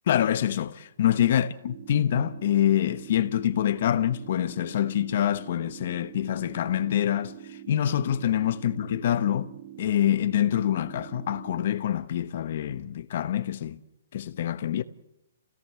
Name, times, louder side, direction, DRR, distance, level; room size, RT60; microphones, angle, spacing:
voice 1, 0.1-9.5 9.8-13.8 14.1-14.8, left 11 dB, 50° left, 1.1 m, -26 dB
sound 1, 1.6-11.6, right 11 dB, 40° right, 5.4 m, -45 dB
28.5 x 17.5 x 7.7 m
hypercardioid pair, 160°, 0 cm